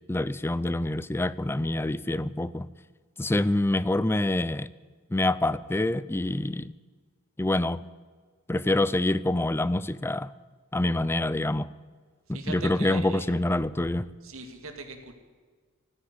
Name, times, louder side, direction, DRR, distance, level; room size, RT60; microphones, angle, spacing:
voice 1, 0.1-2.7 3.2-4.7 5.1-6.7 7.4-7.8 8.5-10.3 10.7-11.7 12.3-14.1, left 1 dB, 10° left, 18 dB, 0.4 m, -26 dB
voice 2, 12.3-13.2 14.2-15.1, right 3 dB, 75° right, 6 dB, 2.2 m, -39 dB
14.0 x 9.9 x 9.6 m, 1.5 s
head